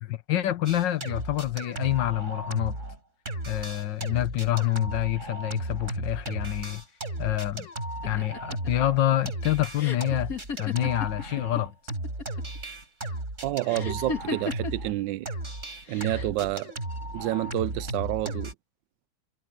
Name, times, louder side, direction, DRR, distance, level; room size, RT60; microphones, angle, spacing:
voice 1, 0.0-2.8 3.5-6.8 7.2-7.7 8.0-10.3 10.6-11.7, left 13 dB, 85° left, 1.6 m, -27 dB
sound 1, 0.7-3.0 3.3-14.9 15.3-18.5, right 1 dB, 40° right, 5.8 m, -35 dB
sound 2, 8.0-11.6 11.9-12.6 13.7-14.9 15.9-16.4, left 3 dB, 55° left, 2.4 m, -35 dB
voice 2, 13.4-15.3 15.9-16.7 17.1-18.5, right 16 dB, 85° right, 1.3 m, -29 dB
omnidirectional pair, 1.9 m